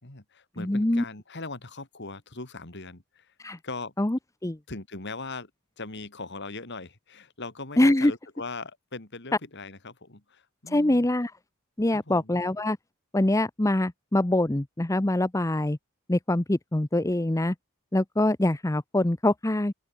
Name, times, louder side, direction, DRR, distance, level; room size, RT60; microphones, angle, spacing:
voice 1, 0.0-3.3 3.6-3.9 4.7-5.5 5.8-11.1 11.9-12.4, left 3 dB, 50° left, 2.7 m, -40 dB
voice 2, 0.6-1.0 3.4-3.6 4.0-4.6 7.8-8.1 10.7-11.3 11.8-12.8 13.1-15.8 16.1-17.5 17.9-19.7, left 1 dB, 15° left, 0.6 m, -24 dB
open air
head